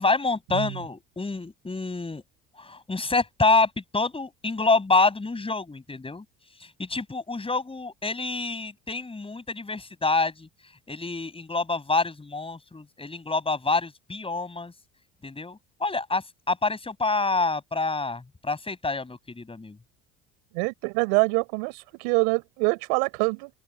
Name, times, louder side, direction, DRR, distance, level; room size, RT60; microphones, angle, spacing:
voice 1, 0.0-2.2 2.6-6.2 6.8-10.5 10.9-14.7 15.2-19.8, left 3 dB, 15° left, 7.8 m, -27 dB
voice 2, 20.5-23.5, right 37 dB, 80° right, 7.8 m, -25 dB
open air
supercardioid pair, 85°, 31 cm